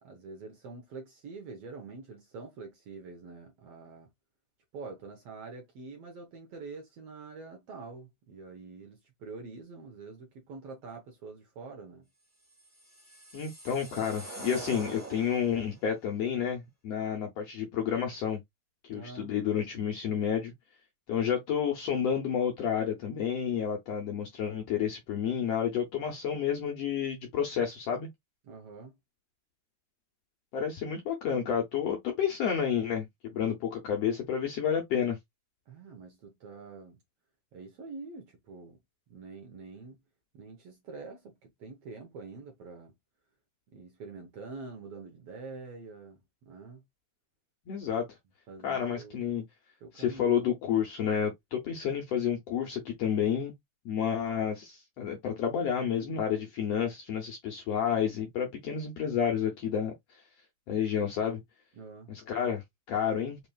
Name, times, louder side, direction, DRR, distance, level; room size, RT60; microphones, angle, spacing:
voice 1, 0.0-4.1 4.7-12.1 18.9-19.3 28.4-29.0 35.7-37.0 37.5-38.8 39.1-40.0 40.3-42.9 43.7-46.8 48.5-49.2 49.8-50.4 61.8-62.1, right 4 dB, 65° right, 1.6 m, -46 dB
sound 1, 12.6-15.8, right 2 dB, 10° right, 0.7 m, -44 dB
voice 2, 13.3-18.4 18.9-20.5 21.1-28.1 30.5-33.1 33.3-35.2 47.7-48.1 48.6-49.4 49.9-53.5 53.8-59.9 60.7-61.4 62.1-63.4, left 8 dB, 70° left, 1.5 m, -30 dB
5.2 x 3.0 x 2.3 m
omnidirectional pair, 3.7 m